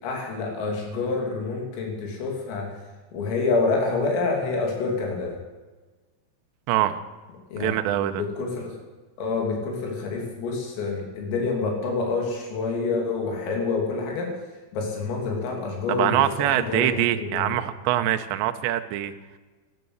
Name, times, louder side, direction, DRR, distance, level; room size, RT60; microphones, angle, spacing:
voice 1, 0.0-2.7 3.1-5.4 7.5-8.7 9.2-14.3 14.7-17.5, left 3 dB, 85° left, 0 dB, 5.6 m, -27 dB
voice 2, 6.7-7.0 7.6-8.2 16.0-19.1, right 13 dB, 80° right, 8 dB, 2.7 m, -24 dB
12.5 x 12.5 x 7.9 m, 1.3 s
omnidirectional pair, 5.8 m